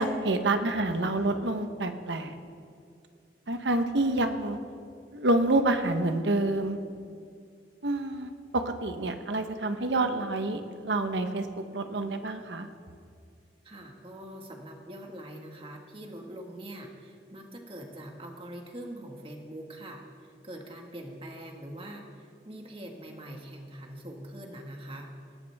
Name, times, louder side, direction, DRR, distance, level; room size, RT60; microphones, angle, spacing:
voice 1, 0.0-2.4 3.5-4.6 5.1-6.8 7.8-11.5 11.7-12.7, right 2 dB, 90° right, 7 dB, 1.1 m, -28 dB
voice 2, 13.6-25.1, right 1 dB, 30° right, 2 dB, 1.8 m, -43 dB
20.0 x 17.0 x 3.6 m, 2.3 s
head